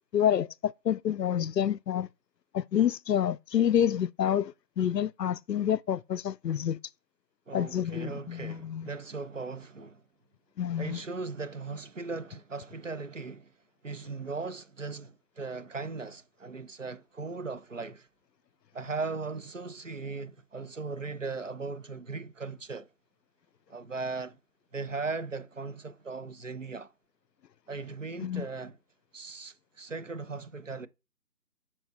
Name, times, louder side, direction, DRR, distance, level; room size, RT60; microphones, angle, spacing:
voice 1, 0.1-2.1 2.5-6.8 7.5-8.9 10.6-11.0 28.2-28.5, left 9 dB, 80° left, 0.5 m, -28 dB
voice 2, 7.5-10.0 10.8-13.5 13.8-18.1 18.7-22.9 23.7-24.4 24.7-26.9 27.7-28.8 29.1-30.9, right 4 dB, 50° right, 0.7 m, -38 dB
8.9 x 6.0 x 2.5 m
figure-of-eight pair, 170°, 48 cm